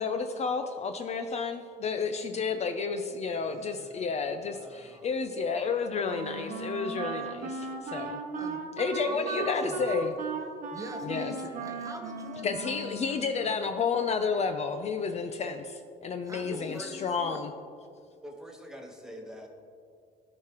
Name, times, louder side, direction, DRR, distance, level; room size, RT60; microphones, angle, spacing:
voice 1, 0.0-8.2 8.8-10.1 11.0-11.3 12.4-17.5, left 5 dB, 40° left, 7 dB, 0.4 m, -31 dB
voice 2, 3.4-4.1 4.4-5.1 8.3-8.6 9.0-10.0 10.7-13.5 16.2-17.4, right 1 dB, 20° right, 3 dB, 0.9 m, -45 dB
Wind instrument woodwind instrument, 6.0-13.4, right 4 dB, 50° right, 0.9 m, -36 dB
voice 3, 16.5-17.0 18.2-19.5, equal, 5° right, 1 dB, 1.2 m, -43 dB
13.5 x 4.8 x 2.9 m, 2.2 s
cardioid pair, 110°, 17 cm